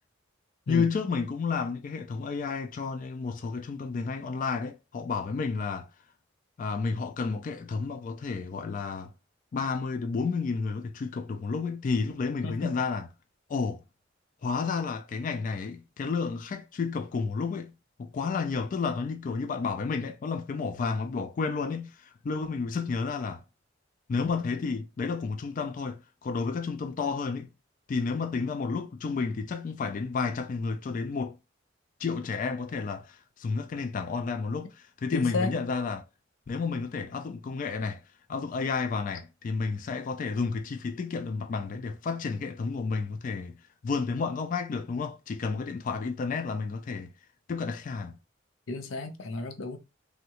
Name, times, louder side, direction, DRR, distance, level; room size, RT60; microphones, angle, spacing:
voice 1, 0.7-5.9 6.6-9.1 9.5-13.0 13.5-13.8 14.4-17.7 18.0-23.4 24.1-27.5 27.9-31.4 32.0-34.7 35.0-36.0 36.5-38.0 38.3-43.6 43.8-47.1 47.5-48.2, left 4 dB, 40° left, 0.3 m, -31 dB
voice 2, 12.4-12.8 35.1-35.6 48.7-49.8, left 3 dB, 85° left, 0.6 m, -33 dB
3.5 x 2.1 x 2.8 m
head